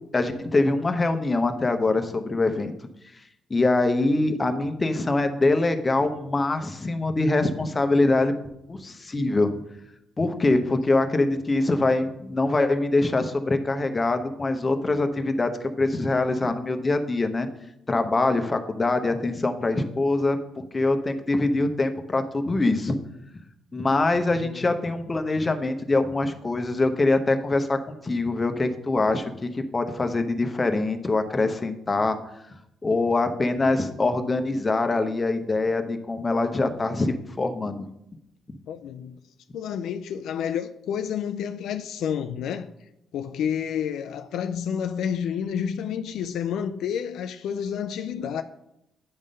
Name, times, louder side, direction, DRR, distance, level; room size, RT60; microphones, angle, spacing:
voice 1, 0.1-2.7 3.5-8.3 8.7-9.5 10.2-15.5 15.8-17.5 17.9-20.4 20.7-23.0 23.7-32.2 32.8-37.9, left 2 dB, 25° left, 0.8 m, -24 dB
voice 2, 24.3-24.7 38.7-39.2 39.5-42.7 43.1-48.4, left 8 dB, 80° left, 0.3 m, -30 dB
9.7 x 3.7 x 5.3 m
cardioid pair, 90°, 0 cm